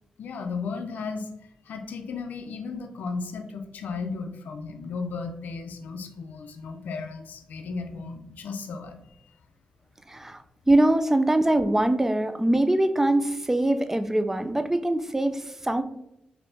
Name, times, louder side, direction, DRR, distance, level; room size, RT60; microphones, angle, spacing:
voice 1, 0.2-1.3 1.7-9.3, left 4 dB, 80° left, 6 dB, 0.4 m, -35 dB
voice 2, 10.1-15.8, right 1 dB, 15° right, 9 dB, 0.3 m, -23 dB
3.4 x 2.7 x 2.6 m, 0.87 s
cardioid pair, 55°, 3 cm